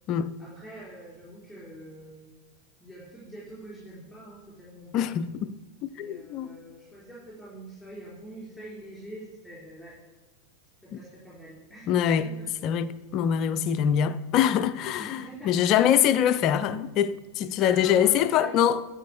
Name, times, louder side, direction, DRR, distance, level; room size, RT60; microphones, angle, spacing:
voice 1, 0.4-2.3 2.8-5.1 5.8-9.9 10.9-11.9 12.2-12.4 15.0-15.8 17.6-18.5, right 1 dB, ahead, 4.0 m, -45 dB
voice 2, 4.9-5.5 6.0-6.5 11.9-12.3 12.6-18.8, left 9 dB, 35° left, 0.4 m, -24 dB
11.5 x 5.0 x 6.6 m
figure-of-eight pair, 90°, 0 cm